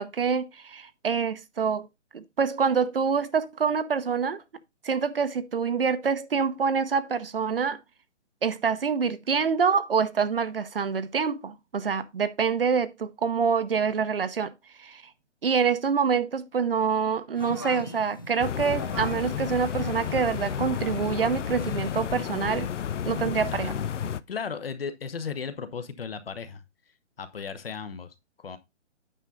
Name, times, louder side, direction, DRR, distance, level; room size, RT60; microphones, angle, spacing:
voice 1, 0.0-1.9 2.1-4.4 4.8-7.8 8.4-14.5 14.8-15.0 15.4-22.7 23.1-23.7, right 6 dB, 50° right, 0.8 m, -26 dB
sound 1, 17.3-22.6, equal, 20° left, 0.5 m, -41 dB
sound 2, 18.4-24.2, left 9 dB, 75° left, 0.6 m, -32 dB
voice 2, 23.5-23.8 24.3-26.6 27.2-28.6, left 6 dB, 50° left, 1.1 m, -36 dB
9.1 x 5.7 x 3.8 m
hypercardioid pair, 175°, 37 cm